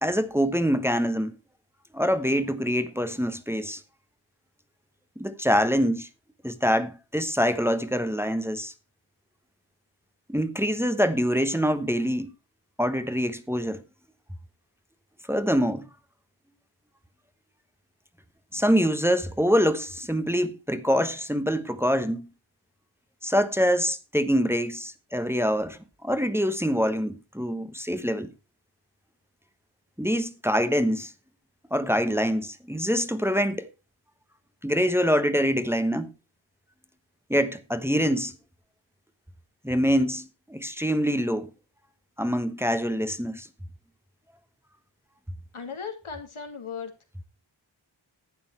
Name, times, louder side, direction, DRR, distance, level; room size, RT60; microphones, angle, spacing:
voice 1, 0.0-1.3 1.9-3.8 5.2-6.1 6.4-8.7 10.3-12.3 12.8-13.8 15.3-15.9 18.5-22.3 23.2-28.3 30.0-31.1 31.7-33.7 34.6-36.1 37.3-38.3 39.6-41.5 42.2-43.5, equal, 5° right, 1.1 m, -25 dB
voice 2, 45.5-46.9, left 6 dB, 90° left, 2.5 m, -37 dB
11.5 x 8.7 x 4.6 m
wide cardioid pair, 60°, 48 cm